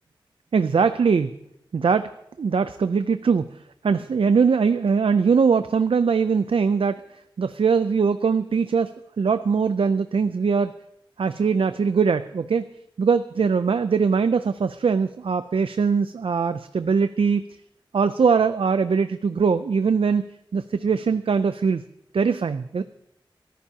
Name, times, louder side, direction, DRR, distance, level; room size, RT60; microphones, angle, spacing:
voice 1, 0.5-1.3 1.7-2.1 2.4-3.5 3.8-7.0 7.4-10.7 11.2-12.6 13.0-17.4 17.9-20.2 20.5-21.8 22.1-22.8, right 5 dB, 85° right, 11 dB, 0.5 m, -21 dB
24.0 x 14.5 x 2.8 m, 0.79 s
wide cardioid pair, 85°, 9 cm